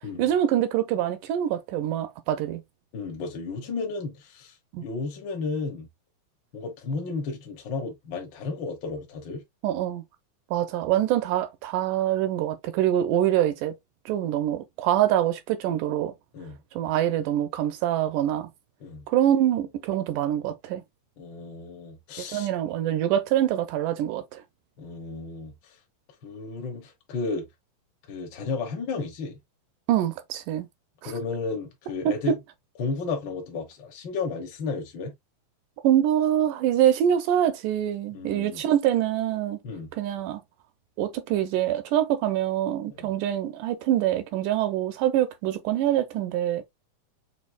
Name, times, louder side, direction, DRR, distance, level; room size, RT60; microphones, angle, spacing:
voice 1, 0.2-2.6 4.7-4.8 9.6-10.0 10.5-13.7 14.1-16.1 16.8-18.5 19.1-20.8 22.3-24.4 29.9-30.7 31.0-31.1 32.1-32.4 35.8-39.6 40.0-40.4 41.0-46.6, right 11 dB, 85° right, 2.2 m, -25 dB
voice 2, 2.9-5.9 6.5-9.4 16.3-16.6 18.8-19.0 21.2-22.5 24.8-25.5 26.2-27.4 28.1-29.4 31.0-32.4 32.8-35.1 38.1-38.6 39.6-39.9 42.9-43.1, left 4 dB, 65° left, 1.1 m, -33 dB
6.4 x 3.0 x 2.3 m
omnidirectional pair, 3.8 m